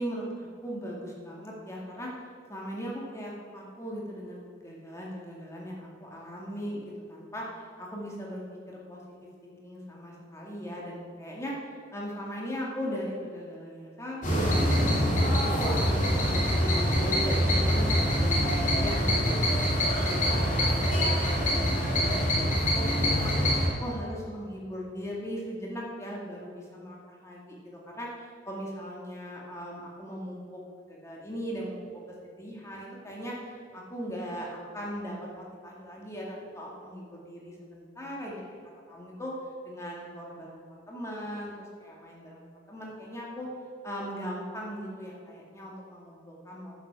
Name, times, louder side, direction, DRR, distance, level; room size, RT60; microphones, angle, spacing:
voice 1, 0.0-2.1 2.5-9.0 9.4-15.8 16.1-23.4 23.8-31.8 32.2-38.4 38.9-39.3 39.6-43.5 43.8-46.7, equal, 15° left, -3 dB, 2.2 m, -39 dB
sound 1, 14.2-23.7, equal, 40° left, 2.7 m, -25 dB
10.5 x 7.6 x 6.2 m, 2.3 s
head